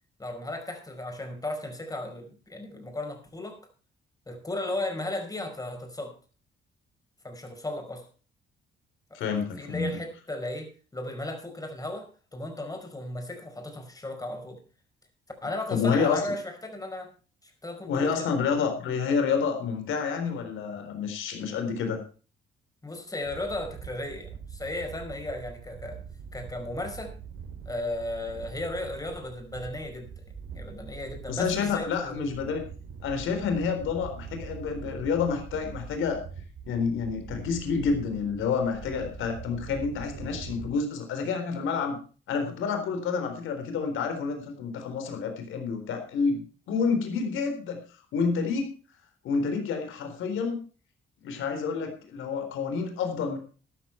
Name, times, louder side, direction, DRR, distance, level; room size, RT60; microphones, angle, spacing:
voice 1, 0.2-3.6 4.3-6.2 7.2-8.0 9.1-9.2 9.6-14.6 15.4-17.1 17.4-18.3 22.8-26.0 26.3-27.1 27.7-30.2 30.5-32.2, left 1 dB, 20° left, 5 dB, 5.2 m, -35 dB
voice 2, 9.1-10.0 15.7-16.2 17.9-22.0 31.3-32.6 33.0-36.2 36.7-42.0 42.3-47.8 48.1-48.7 49.2-50.6 51.2-53.4, left 5 dB, 85° left, 6 dB, 3.9 m, -29 dB
sound 1, 23.2-40.7, right 6 dB, 75° right, 4.4 m, -43 dB
13.5 x 11.5 x 4.4 m, 0.37 s
cardioid pair, 90°, 20 cm